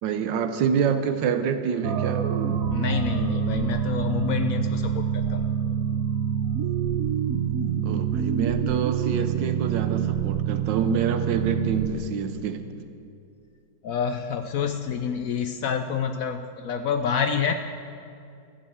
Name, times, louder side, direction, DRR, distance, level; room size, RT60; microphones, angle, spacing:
voice 1, 0.0-2.2 7.8-12.7, right 6 dB, 85° right, 8 dB, 1.4 m, -26 dB
sound 1, 1.8-11.9, right 8 dB, 60° right, 1.0 m, -26 dB
voice 2, 2.7-5.4 13.8-17.5, left 7 dB, 70° left, 8 dB, 0.8 m, -28 dB
13.5 x 7.9 x 7.8 m, 2.5 s
omnidirectional pair, 1.9 m